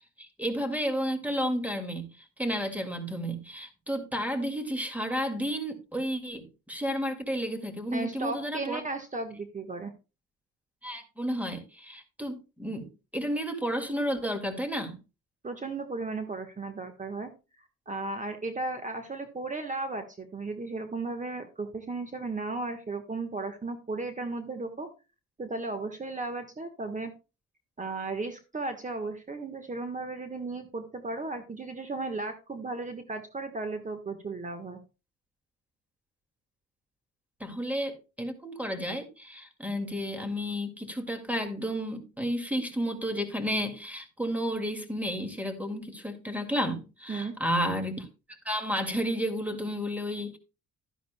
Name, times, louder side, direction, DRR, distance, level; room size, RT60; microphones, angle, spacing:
voice 1, 0.2-8.8 10.8-14.9 37.4-50.4, equal, 5° right, 2.0 m, -32 dB
voice 2, 7.9-9.9 15.4-17.3 17.9-24.9 25.4-27.1 27.8-34.8 47.1-47.3, right 3 dB, 25° right, 1.3 m, -35 dB
12.0 x 10.0 x 2.2 m
cardioid pair, 90°, 30 cm